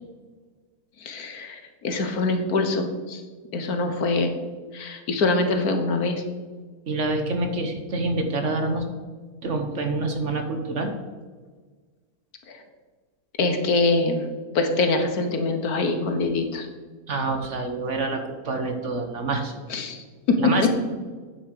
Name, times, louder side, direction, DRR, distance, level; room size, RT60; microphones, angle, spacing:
voice 1, 1.0-3.2 3.5-4.3 4.7-6.2 12.5-12.6 13.4-14.2 14.5-16.7 19.7-20.5, left 3 dB, 70° left, 6 dB, 1.6 m, -24 dB
voice 2, 6.9-8.9 9.4-10.9 17.1-19.5 20.4-20.7, right 2 dB, 50° right, 5 dB, 1.3 m, -26 dB
9.5 x 7.0 x 6.6 m, 1.4 s
omnidirectional pair, 1.7 m